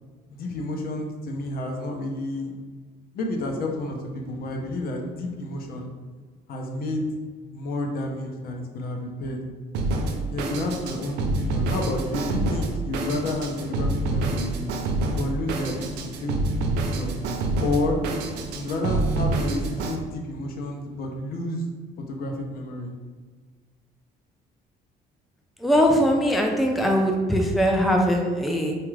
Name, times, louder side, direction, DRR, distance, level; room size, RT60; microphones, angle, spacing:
voice 1, 0.3-2.5 3.1-5.9 6.5-7.1 7.5-9.4 10.3-14.6 15.1-15.9 16.2-17.2 17.6-18.0 18.5-21.6 22.1-22.9, left 2 dB, 60° left, 2 dB, 0.7 m, -30 dB
Drum kit, 9.7-20.0, right 2 dB, 85° right, 0.5 m, -27 dB
voice 2, 25.6-28.8, equal, ahead, 1 dB, 0.4 m, -21 dB
4.3 x 2.4 x 3.2 m, 1.5 s
cardioid pair, 110°, 17 cm